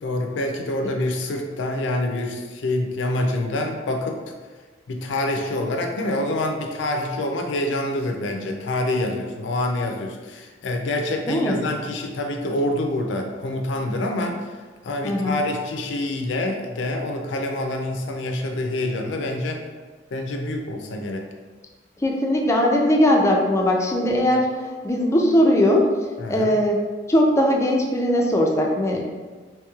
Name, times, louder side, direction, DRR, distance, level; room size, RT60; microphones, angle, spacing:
voice 1, 0.0-4.2 4.9-14.4 14.8-19.6 20.1-21.3 26.2-26.6, left 1 dB, 85° left, 3 dB, 0.4 m, -26 dB
voice 2, 11.3-11.6 15.0-15.4 22.0-24.5 24.8-25.9 26.3-26.8 27.1-29.0, left 1 dB, 15° left, 0 dB, 0.3 m, -19 dB
3.1 x 3.0 x 2.3 m, 1.4 s
head